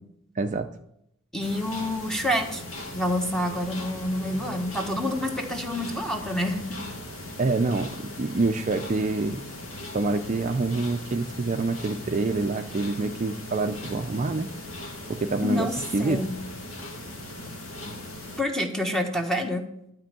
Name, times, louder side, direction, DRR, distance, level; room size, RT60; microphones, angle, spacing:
voice 1, 0.4-0.7 7.4-9.4 9.9-14.5 15.2-16.2, right 3 dB, 35° right, 6 dB, 0.4 m, -26 dB
voice 2, 1.3-2.6 2.9-6.8 15.4-16.3 17.8-17.9 18.4-19.6, left 1 dB, 5° left, 3 dB, 1.2 m, -28 dB
sound 1, 1.4-18.4, left 1 dB, 75° left, 2.0 m, -39 dB
12.0 x 4.5 x 7.6 m, 0.78 s
head